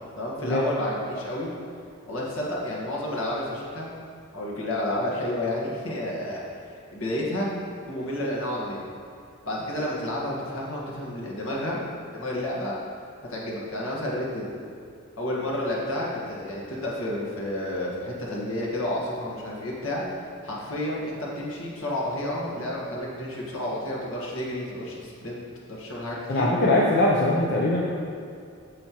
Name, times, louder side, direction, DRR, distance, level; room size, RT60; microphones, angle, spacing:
voice 1, 0.2-1.5 2.1-3.9 4.3-7.5 7.9-8.8 9.4-11.8 12.1-12.8 13.3-14.5 15.2-25.4 25.7-26.5, left 1 dB, 75° left, -4 dB, 1.6 m, -30 dB
voice 2, 26.3-27.8, left 1 dB, 50° left, -4 dB, 0.7 m, -21 dB
8.6 x 6.7 x 3.0 m, 2.4 s
head